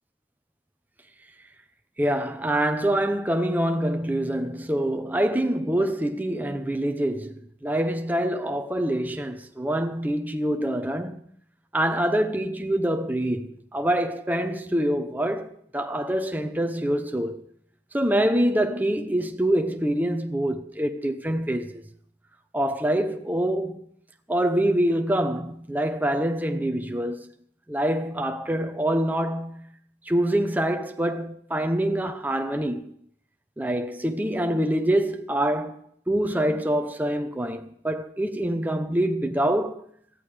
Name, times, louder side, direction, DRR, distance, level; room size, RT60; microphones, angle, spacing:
voice 1, 2.0-11.2 11.7-17.4 17.9-21.8 22.5-23.9 24.3-27.3 27.7-29.8 30.1-32.9 33.6-39.8, right 1 dB, 10° right, 0.8 m, -25 dB
19.0 x 14.0 x 3.4 m
head